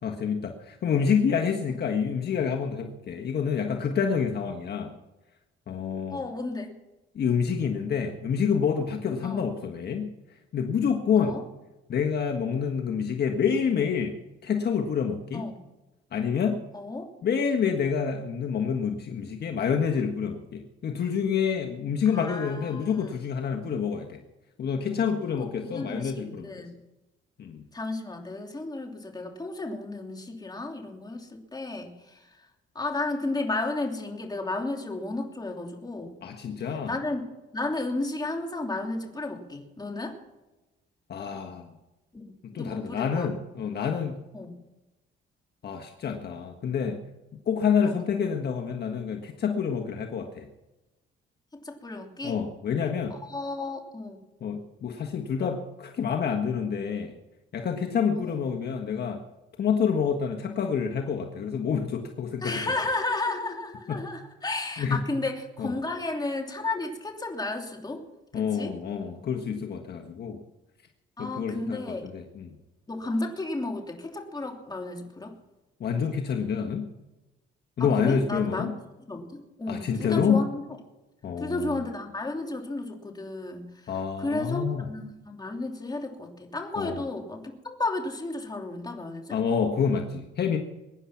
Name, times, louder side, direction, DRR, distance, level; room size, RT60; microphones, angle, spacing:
voice 1, 0.0-4.9 5.7-6.2 7.1-10.1 10.5-11.4 11.9-14.1 14.4-15.5 16.1-16.6 17.2-24.2 24.6-26.5 27.4-27.6 36.2-36.9 41.1-41.7 42.4-44.2 45.6-47.0 47.5-50.5 52.2-53.1 54.4-57.1 57.5-59.2 59.6-62.7 63.9-64.0 64.8-65.0 65.6-65.7 68.3-70.4 71.2-72.5 75.8-76.8 77.8-78.7 79.7-80.5 81.2-81.9 83.9-84.9 86.8-87.0 89.3-90.6, left 6 dB, 55° left, 3 dB, 1.5 m, -28 dB
voice 2, 6.1-6.7 9.2-9.4 11.2-11.4 15.3-15.6 16.7-17.1 22.1-23.1 25.4-26.7 27.7-32.3 32.7-36.2 36.9-37.2 37.5-40.2 42.1-43.3 44.3-44.5 47.8-48.1 51.5-52.4 53.1-54.2 58.1-58.4 62.4-68.0 68.3-68.7 71.2-72.1 72.9-75.3 77.8-78.7 79.1-80.6 81.4-83.9 84.2-89.4, left 2 dB, 20° left, 2 dB, 3.1 m, -33 dB
23.0 x 10.0 x 5.9 m, 1.1 s
cardioid pair, 90°, 20 cm